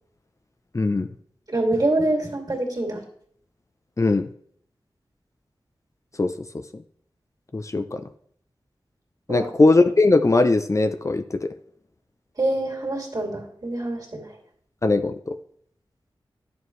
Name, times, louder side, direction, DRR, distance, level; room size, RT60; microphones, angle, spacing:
voice 1, 0.7-1.1 4.0-4.3 6.2-6.8 7.5-8.1 9.3-11.5 14.8-15.4, left 2 dB, 35° left, 8 dB, 0.5 m, -20 dB
voice 2, 1.5-3.0 9.3-9.5 12.4-14.3, right 2 dB, 45° right, 0 dB, 2.6 m, -25 dB
10.5 x 6.8 x 3.2 m, 0.62 s
wide cardioid pair, 70°, 9 cm